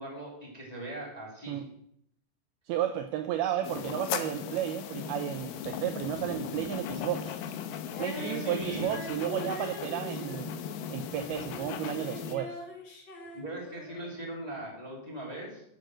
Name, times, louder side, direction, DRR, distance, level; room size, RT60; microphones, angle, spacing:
voice 1, 0.0-1.6 8.1-8.9 13.3-15.6, right 1 dB, 10° left, -3 dB, 2.0 m, -39 dB
voice 2, 2.7-7.4 8.0-10.6 10.9-12.6, right 11 dB, 85° right, 8 dB, 2.2 m, -33 dB
sound 1, 3.6-12.4, left 8 dB, 80° left, 2.1 m, -38 dB
Female singing, 7.9-11.7 12.0-14.1, left 2 dB, 50° left, 1.5 m, -42 dB
10.5 x 7.9 x 6.3 m, 0.75 s
omnidirectional pair, 5.1 m